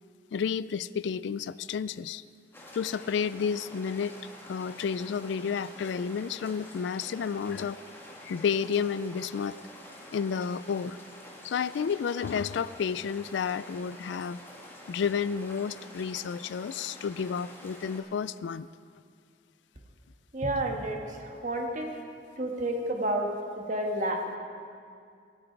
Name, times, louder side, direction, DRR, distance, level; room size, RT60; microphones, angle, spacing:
voice 1, 0.3-2.2 2.7-4.1 4.5-7.8 8.2-9.6 10.1-11.0 11.4-14.4 14.9-18.7, left 6 dB, 75° left, 17 dB, 0.3 m, -31 dB
sound 1, 2.5-18.0, left 1 dB, 15° left, 1.7 m, -48 dB
voice 2, 20.3-22.0 22.4-24.4, right 1 dB, 45° right, 2 dB, 1.5 m, -31 dB
23.5 x 9.0 x 4.6 m, 2.3 s
head